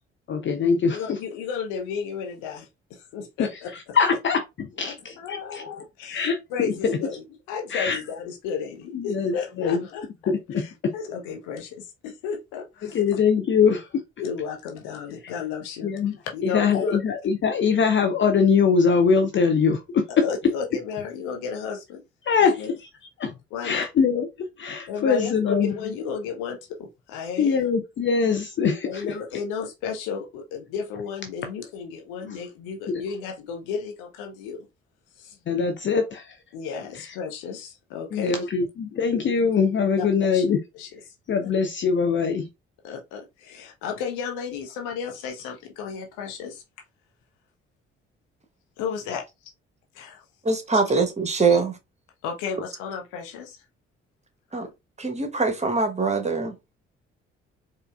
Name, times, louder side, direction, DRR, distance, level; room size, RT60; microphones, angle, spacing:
voice 1, 0.3-1.2 3.4-3.5 3.9-5.6 6.1-7.0 7.7-8.0 8.9-9.8 10.3-10.9 12.8-14.0 15.8-16.2 16.4-20.2 22.2-22.9 23.2-23.3 23.6-25.7 27.4-29.1 32.9-33.0 35.5-36.4 37.1-37.2 38.1-40.6 41.3-42.5, left 6 dB, 35° left, 0.6 m, -23 dB
voice 2, 0.9-3.7 4.8-10.1 10.6-13.2 14.2-17.0 20.2-22.0 22.6-22.7 23.5-23.9 24.9-27.7 28.8-34.7 35.2-35.4 36.5-38.5 40.0-40.1 40.3-40.4 40.7-41.1 42.8-46.6 48.8-49.5 49.9-50.2 51.5-51.6 52.2-53.6, left 6 dB, 65° left, 0.9 m, -33 dB
voice 3, 50.4-51.8 54.5-54.7 55.0-56.5, right 4 dB, 20° right, 1.0 m, -23 dB
4.6 x 2.5 x 2.3 m
figure-of-eight pair, 40°, 32 cm